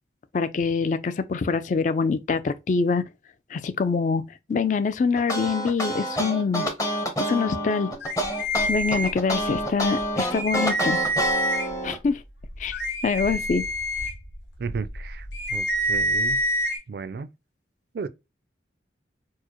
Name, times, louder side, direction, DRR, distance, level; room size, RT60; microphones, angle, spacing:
voice 1, 0.3-3.0 3.5-4.2 4.5-6.7 7.3-7.9 8.7-11.0 11.8-12.2 12.6-12.7 13.0-13.6, left 5 dB, 40° left, 0.3 m, -24 dB
sound 1, 5.2-12.0, equal, 20° left, 0.7 m, -27 dB
sound 2, 8.0-9.6 10.0-10.1 10.3-11.9 12.4-16.8, equal, 75° left, 1.0 m, -27 dB
voice 2, 14.6-15.3 15.5-16.4 16.9-17.3 17.9-18.1, right 5 dB, 55° right, 0.3 m, -33 dB
4.5 x 2.1 x 2.9 m
head